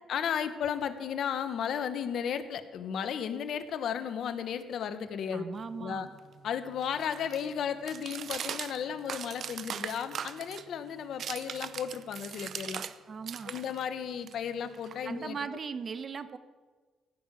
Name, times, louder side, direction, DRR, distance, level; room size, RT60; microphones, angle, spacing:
voice 1, 0.1-5.4 5.7-6.1 6.4-12.8 13.4-15.4, left 8 dB, 70° left, 10 dB, 1.2 m, -34 dB
voice 2, 5.3-6.1 13.1-13.6 15.0-16.4, right 5 dB, 45° right, 11 dB, 1.1 m, -38 dB
sound 1, 5.6-13.0 13.2-15.4, right 8 dB, 65° right, 0.7 m, -41 dB
16.5 x 6.6 x 10.0 m, 1.4 s
cardioid pair, 75°, 0 cm